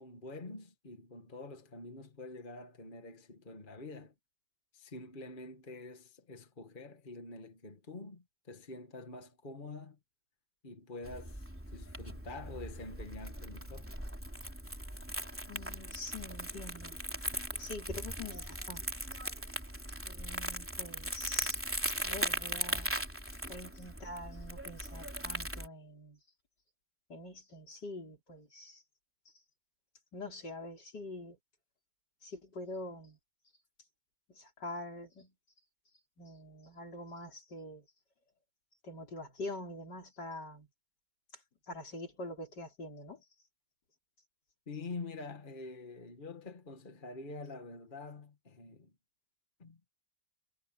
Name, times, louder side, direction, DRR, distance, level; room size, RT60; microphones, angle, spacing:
voice 1, 0.0-4.1 4.7-10.0 10.6-13.9 44.7-48.9 49.6-49.8, left 3 dB, 30° left, 1.9 m, -46 dB
Crumpling crinkling, 11.0-25.7, equal, 5° right, 3.3 m, -39 dB
voice 2, 15.4-17.0 17.5-18.9 20.0-21.6 21.9-22.9 23.5-26.2 27.1-28.8 30.1-31.4 32.2-33.2 34.3-35.3 36.2-37.9 38.8-40.7 41.7-43.2, left 1 dB, 80° left, 5.2 m, -45 dB
omnidirectional pair, 1.8 m